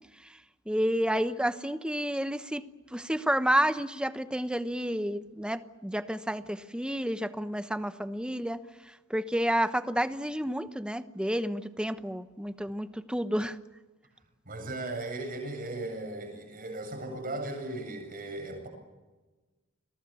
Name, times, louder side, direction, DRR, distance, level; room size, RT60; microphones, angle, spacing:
voice 1, 0.7-2.6 2.9-8.6 9.1-13.6, equal, 5° right, 11 dB, 1.0 m, -30 dB
voice 2, 14.5-18.7, right 2 dB, 40° right, 4 dB, 7.9 m, -37 dB
30.0 x 22.5 x 7.0 m, 1.2 s
head